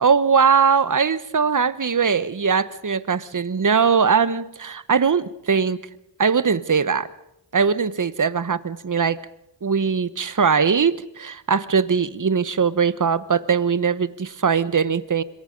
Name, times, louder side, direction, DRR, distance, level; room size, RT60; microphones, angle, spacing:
voice 1, 0.0-5.8 6.2-7.1 7.5-9.2 9.6-15.2, right 6 dB, 45° right, 15 dB, 1.1 m, -20 dB
26.0 x 22.5 x 5.2 m, 0.81 s
wide cardioid pair, 75°, 45 cm